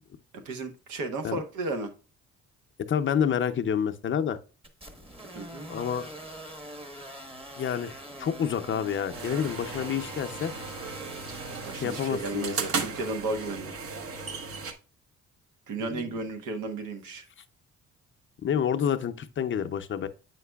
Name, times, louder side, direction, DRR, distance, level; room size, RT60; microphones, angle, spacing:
voice 1, 0.3-1.9 5.3-5.7 11.5-13.7 15.7-17.3, right 3 dB, 85° right, 1.1 m, -34 dB
voice 2, 2.9-4.4 5.7-6.1 7.6-10.5 11.7-12.6 15.8-16.0 18.4-20.1, left 8 dB, 40° left, 0.5 m, -28 dB
sound 1, 4.6-12.1, right 1 dB, 20° right, 1.1 m, -43 dB
sound 2, 9.1-14.7, right 5 dB, 50° right, 0.9 m, -36 dB
7.6 x 5.8 x 2.3 m
cardioid pair, 90°, 30 cm